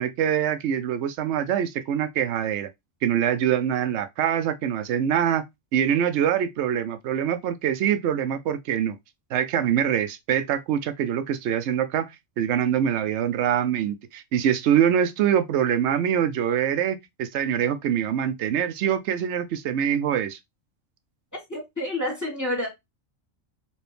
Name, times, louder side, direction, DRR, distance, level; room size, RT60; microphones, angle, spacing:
voice 1, 0.0-2.7 3.0-5.4 5.7-9.0 9.3-12.1 12.4-20.4, right 9 dB, 65° right, 0.8 m, -24 dB
voice 2, 21.5-22.7, left 1 dB, 15° left, 1.4 m, -28 dB
4.2 x 2.6 x 3.3 m
omnidirectional pair, 1.4 m